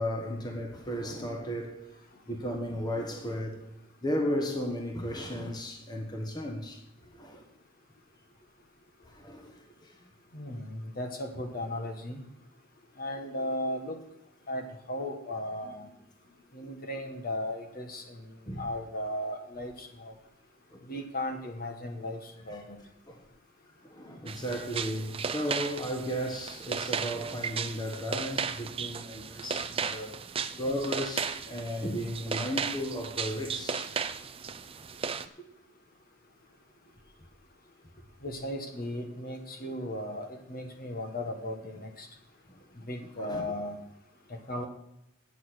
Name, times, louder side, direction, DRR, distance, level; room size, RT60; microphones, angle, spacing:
voice 1, 0.0-1.8 2.3-3.7 4.0-6.8 7.1-7.4 9.0-9.9 15.6-15.7 18.5-18.6 20.7-20.9 23.1-23.2 23.8-30.1 30.6-33.9 43.2-43.5, equal, 20° left, 1.3 m, -34 dB
voice 2, 10.3-12.2 13.0-14.0 14.5-15.9 16.5-18.3 18.6-20.1 20.8-22.8 38.2-42.1 42.8-43.8 44.3-44.7, left 1 dB, 45° left, 1.4 m, -36 dB
sound 1, 24.3-35.3, right 6 dB, 25° right, 0.5 m, -35 dB
8.5 x 6.8 x 8.0 m
head